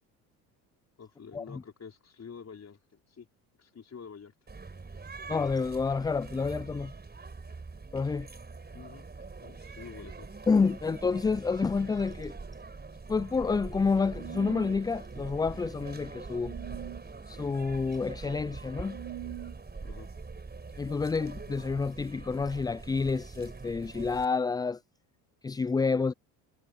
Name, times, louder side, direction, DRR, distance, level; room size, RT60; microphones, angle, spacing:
voice 1, 1.0-3.3 3.6-4.3 8.7-9.1 9.4-10.3 19.8-20.1, left 6 dB, 35° left, 5.3 m, -48 dB
sound 1, 4.5-24.2, right 4 dB, 20° right, 4.8 m, -43 dB
voice 2, 5.3-6.9 7.9-8.3 10.5-12.3 13.1-16.5 17.3-19.0 20.8-24.8 25.4-26.1, left 4 dB, 10° left, 0.3 m, -29 dB
sound 2, 14.1-14.8 16.4-17.0 18.9-19.6, right 15 dB, 65° right, 2.0 m, -42 dB
hypercardioid pair, 70°, 46 cm